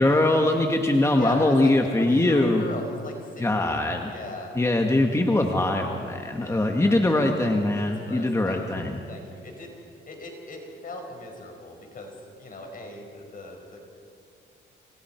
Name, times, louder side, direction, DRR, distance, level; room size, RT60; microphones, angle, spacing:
voice 1, 0.0-2.6 3.4-4.1 4.5-9.0, left 2 dB, 15° left, 2 dB, 1.7 m, -22 dB
voice 2, 1.2-4.5 6.2-7.1 7.8-12.1 12.4-13.8, left 2 dB, 45° left, 2 dB, 5.3 m, -39 dB
28.0 x 27.5 x 4.6 m, 2.3 s
cardioid pair, 90°, 20 cm